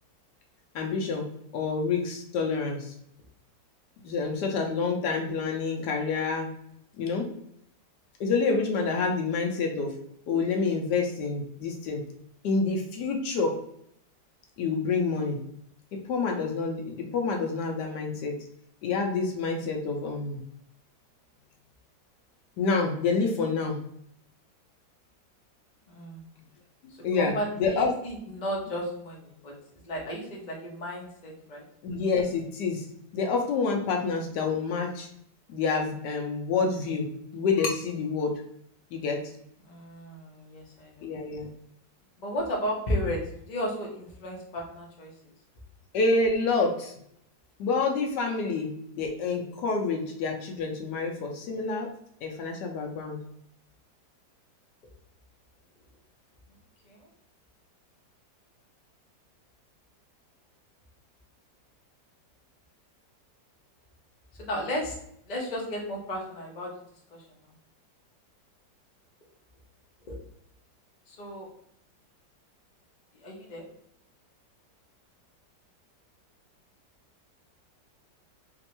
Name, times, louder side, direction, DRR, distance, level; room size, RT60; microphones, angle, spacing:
voice 1, 0.7-1.2 1.5-2.9 4.0-6.5 7.0-7.3 8.2-9.9 10.3-12.0 12.4-13.6 14.6-15.4 16.1-18.4 18.8-20.4 22.6-23.8 27.0-27.9 31.8-32.9 33.1-35.1 35.5-38.4 38.9-39.2 41.0-41.5 45.9-46.9 47.6-51.9 52.2-53.2, left 4 dB, 75° left, 2 dB, 1.2 m, -28 dB
voice 2, 25.9-26.2 27.2-29.5 29.9-31.6 39.6-41.1 42.2-45.1 56.8-57.1 64.4-64.9 65.3-66.7 67.1-67.2 70.1-70.2 71.1-71.5 73.2-73.6, equal, 40° left, -2 dB, 0.6 m, -34 dB
3.3 x 3.0 x 2.9 m, 0.70 s
omnidirectional pair, 1.9 m